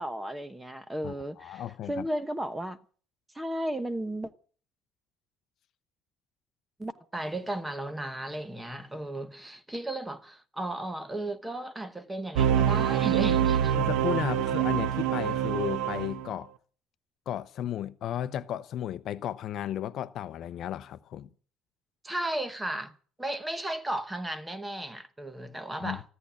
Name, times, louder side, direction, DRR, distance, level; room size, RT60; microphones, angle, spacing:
voice 1, 0.0-1.6 1.9-2.8 3.3-4.3 6.8-13.7 22.0-26.0, right 1 dB, 5° right, 1.0 m, -34 dB
voice 2, 1.0-2.1 13.7-16.5 17.3-21.3 25.8-26.0, left 10 dB, 45° left, 0.7 m, -34 dB
sound 1, 12.4-16.3, right 10 dB, 85° right, 1.0 m, -25 dB
14.5 x 11.0 x 8.3 m
cardioid pair, 170°, 0 cm